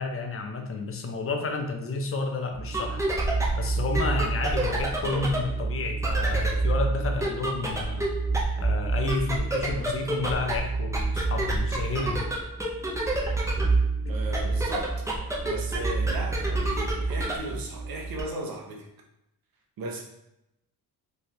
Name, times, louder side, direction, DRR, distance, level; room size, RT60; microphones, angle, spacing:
voice 1, 0.0-3.0 3.5-8.1 8.6-12.3 14.0-14.1, left 3 dB, 35° left, 4 dB, 0.6 m, -31 dB
sound 1, 2.5-18.2, right 2 dB, 10° right, 0.5 m, -27 dB
voice 2, 14.1-15.0 15.5-18.9 19.8-20.0, right 2 dB, 65° right, 0 dB, 0.9 m, -36 dB
3.3 x 2.4 x 4.1 m, 0.83 s
cardioid pair, 135°, 38 cm